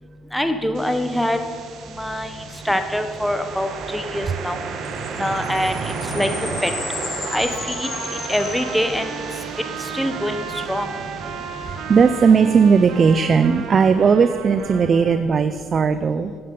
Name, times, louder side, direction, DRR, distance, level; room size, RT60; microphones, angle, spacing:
voice 1, 0.3-1.4 2.0-2.3 2.6-4.6 5.2-5.7 6.1-6.3 6.6-6.7 7.3-7.9 8.3-9.1 9.9-10.4 10.7-10.9, equal, ahead, 7 dB, 0.8 m, -23 dB
sound 1, 0.7-14.6, right 5 dB, 65° right, 1.2 m, -34 dB
sound 2, 4.8-9.5, left 5 dB, 45° left, 1.2 m, -34 dB
Trumpet, 6.7-15.2, right 7 dB, 85° right, 1.1 m, -35 dB
voice 2, 11.5-16.3, right 5 dB, 40° right, 11 dB, 0.4 m, -17 dB
11.0 x 8.6 x 5.4 m, 2.2 s
cardioid pair, 95°, 0 cm